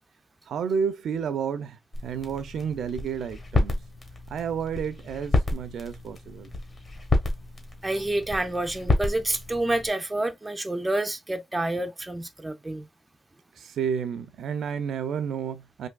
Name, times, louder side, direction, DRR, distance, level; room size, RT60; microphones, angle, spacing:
voice 1, 0.5-3.8 4.3-6.5 13.6-15.9, right 7 dB, 70° right, 0.5 m, -31 dB
sound 1, 1.9-9.9, left 2 dB, 30° left, 0.8 m, -30 dB
voice 2, 7.8-12.9, right 1 dB, 10° right, 0.4 m, -28 dB
3.5 x 2.6 x 2.3 m
wide cardioid pair, 165°, 0 cm